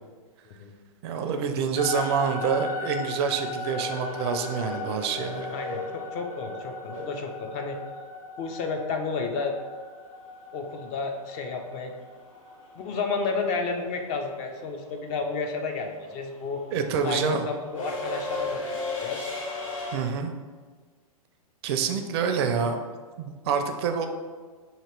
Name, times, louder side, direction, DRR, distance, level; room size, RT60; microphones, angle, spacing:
voice 1, 1.0-5.5 16.7-17.4 19.9-20.3 21.6-22.8 23.2-24.1, right 6 dB, 45° right, 6 dB, 0.4 m, -27 dB
sound 1, 1.7-14.0, left 3 dB, 90° left, 0.6 m, -38 dB
sound 2, 3.7-7.8 10.2-10.3 11.6-11.9 12.2-20.0, left 3 dB, 65° left, 1.3 m, -36 dB
voice 2, 5.5-7.8 8.4-9.6 10.5-11.9 12.8-16.6 17.0-18.6 19.0-19.3, left 4 dB, 35° left, 4 dB, 0.5 m, -31 dB
2.9 x 2.8 x 4.4 m, 1.5 s
hypercardioid pair, 115°, 19 cm